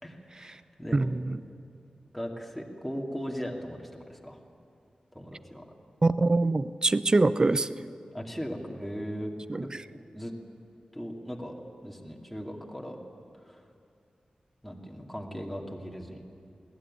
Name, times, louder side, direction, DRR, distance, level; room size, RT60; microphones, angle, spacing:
voice 1, 0.0-1.1 2.1-4.4 5.1-5.6 8.1-9.3 9.6-9.7 10.1-10.3 10.9-11.6 11.8-13.0 13.5-13.6 14.6-16.2, equal, ahead, -1 dB, 2.4 m, -38 dB
voice 2, 0.9-1.4 6.0-7.7 9.5-9.7, right 2 dB, 30° right, 14 dB, 0.6 m, -24 dB
21.0 x 17.5 x 9.7 m, 2.5 s
wide cardioid pair, 125°, 2 cm